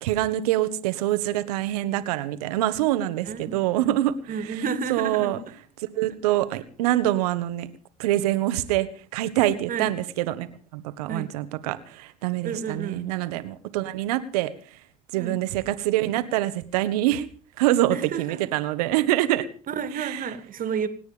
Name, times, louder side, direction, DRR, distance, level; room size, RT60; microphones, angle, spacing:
voice 1, 0.0-4.1 4.9-5.4 6.0-7.7 8.0-8.9 9.1-10.5 10.7-14.5 15.1-17.3 17.6-19.5 20.0-20.2, right 14 dB, 80° right, 1.6 m, -25 dB
voice 2, 3.3-4.0 4.3-5.4 9.7-9.9 11.1-11.3 12.4-13.1 15.1-15.4 17.9-18.4 19.7-20.9, right 6 dB, 45° right, 2.5 m, -31 dB
27.5 x 9.4 x 5.2 m
hypercardioid pair, 70°, 20 cm